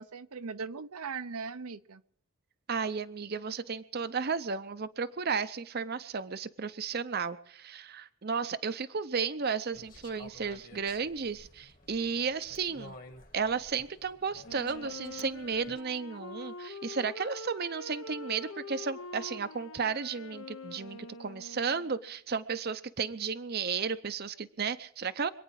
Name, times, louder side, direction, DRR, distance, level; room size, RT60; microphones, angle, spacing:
voice 1, 0.0-2.0, right 5 dB, 85° right, 11 dB, 0.8 m, -39 dB
voice 2, 2.7-12.9 13.3-25.3, right 5 dB, 45° right, 12 dB, 0.6 m, -33 dB
sound 1, 9.7-15.8, left 2 dB, 40° left, 1.6 m, -53 dB
Wind instrument woodwind instrument, 14.4-22.1, left 2 dB, 60° left, 0.7 m, -45 dB
26.0 x 9.4 x 4.8 m, 0.66 s
head